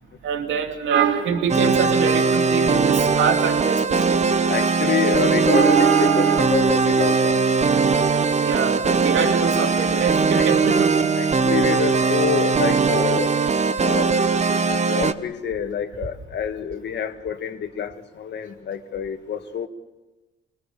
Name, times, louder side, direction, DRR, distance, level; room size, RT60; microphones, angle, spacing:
voice 1, 0.2-4.2 5.5-6.6 8.4-10.9, right 6 dB, 75° right, 4 dB, 2.6 m, -23 dB
sound 1, 1.5-15.1, right 4 dB, 35° right, 1.1 m, -20 dB
voice 2, 4.5-7.5 10.3-13.4 13.8-14.3 14.7-19.7, left 7 dB, 60° left, 7 dB, 2.0 m, -27 dB
26.0 x 20.0 x 8.6 m, 1.1 s
cardioid pair, 90°, 20 cm